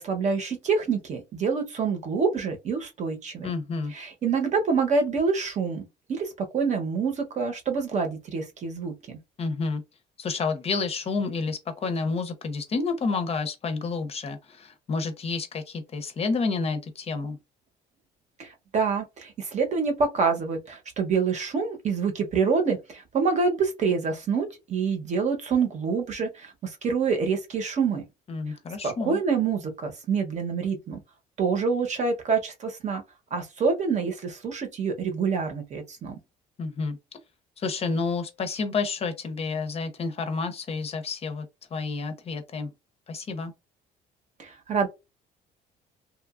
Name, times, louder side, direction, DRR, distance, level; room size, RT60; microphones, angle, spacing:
voice 1, 0.0-3.5 3.9-9.2 18.4-28.0 28.8-31.0 31.4-33.0 33.3-36.2 44.4-44.9, right 5 dB, 45° right, 0.9 m, -26 dB
voice 2, 3.4-3.9 9.4-9.8 10.2-17.4 28.3-29.2 36.6-37.0 37.6-41.5 41.7-42.7 43.1-43.5, left 4 dB, 35° left, 0.6 m, -29 dB
2.9 x 2.3 x 2.4 m
cardioid pair, 110°, 17 cm